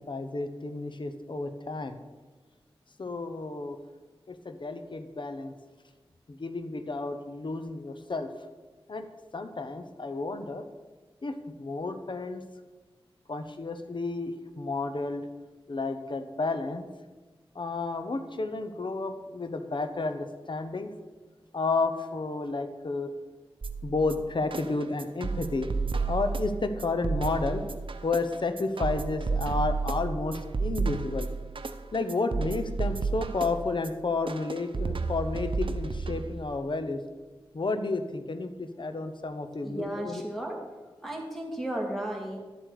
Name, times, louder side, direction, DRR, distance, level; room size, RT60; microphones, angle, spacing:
voice 1, 0.1-2.0 3.0-3.8 4.3-5.5 6.3-8.3 8.9-9.1 9.3-10.6 11.2-12.4 13.3-15.3 15.7-16.9 17.5-20.9 21.5-23.1 23.8-25.7 26.1-27.6 28.0-31.3 31.9-37.0 37.5-40.2, left 3 dB, 55° left, 9 dB, 0.9 m, -31 dB
sound 1, 23.6-36.6, right 4 dB, 60° right, 0.7 m, -32 dB
voice 2, 39.6-40.6 41.0-42.4, right 1 dB, 5° left, 0 dB, 2.4 m, -34 dB
11.0 x 7.8 x 4.9 m, 1.3 s
wide cardioid pair, 75°, 10 cm